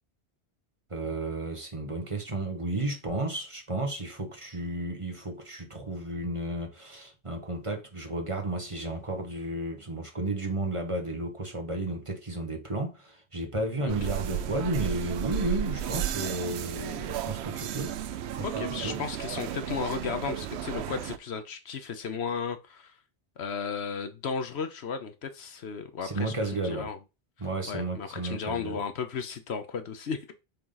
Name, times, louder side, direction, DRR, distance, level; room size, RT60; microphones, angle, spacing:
voice 1, 0.9-18.0 18.4-19.0 26.0-26.9 27.4-28.8, right 2 dB, 30° right, 1.3 m, -33 dB
sound 1, 13.9-21.2, right 10 dB, 75° right, 0.8 m, -33 dB
voice 2, 18.4-22.9 23.4-27.0 27.7-30.3, left 6 dB, 70° left, 1.1 m, -34 dB
6.9 x 3.8 x 3.9 m
omnidirectional pair, 1.2 m